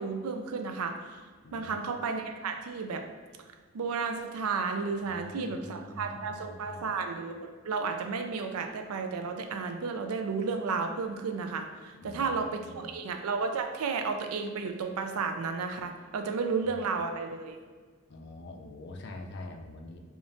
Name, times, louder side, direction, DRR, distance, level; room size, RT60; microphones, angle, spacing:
voice 1, 0.0-1.3 1.5-3.1 3.7-17.6, right 4 dB, 85° right, 6 dB, 0.4 m, -33 dB
voice 2, 1.4-1.9 5.0-6.9 12.0-12.9 16.7-16.8 18.1-20.0, left 2 dB, 50° left, 3 dB, 0.4 m, -45 dB
5.0 x 2.4 x 2.5 m, 1.5 s
head